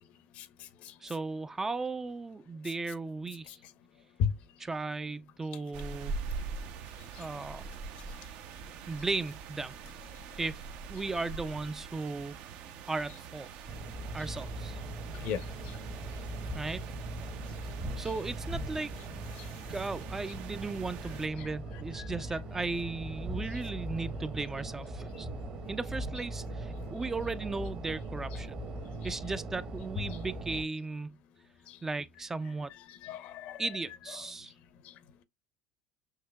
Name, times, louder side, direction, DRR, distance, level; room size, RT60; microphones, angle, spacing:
voice 1, 1.0-3.6 4.6-6.2 7.2-7.6 8.9-9.7 10.3-10.6 10.9-12.3 12.9-13.5 14.1-14.8 16.6-16.8 18.0-18.9 19.7-25.3 25.7-28.6 29.0-31.2 31.8-32.7 33.6-34.5, right 3 dB, 15° right, 0.3 m, -36 dB
sound 1, 5.7-21.3, right 5 dB, 65° right, 0.6 m, -44 dB
sound 2, 13.7-30.6, right 1 dB, 45° right, 1.1 m, -40 dB
voice 2, 15.2-15.7 22.0-22.1 31.7-31.8 33.0-33.6, left 8 dB, 65° left, 0.7 m, -34 dB
6.4 x 2.8 x 2.2 m
supercardioid pair, 105°, 2 cm